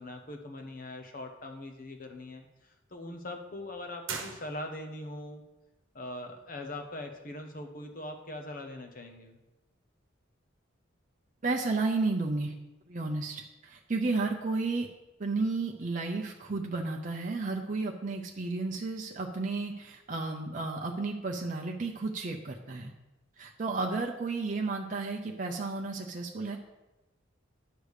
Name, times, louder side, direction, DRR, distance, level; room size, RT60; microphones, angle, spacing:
voice 1, 0.0-5.4 5.9-9.4, left 1 dB, 45° left, 5 dB, 0.9 m, -41 dB
sound 1, 4.0-5.1, right 5 dB, 75° right, 1.0 m, -40 dB
voice 2, 11.4-12.5 12.9-14.9 15.2-22.9 23.4-26.6, right 3 dB, 40° right, 1 dB, 0.5 m, -32 dB
10.0 x 3.4 x 6.4 m, 1.0 s
head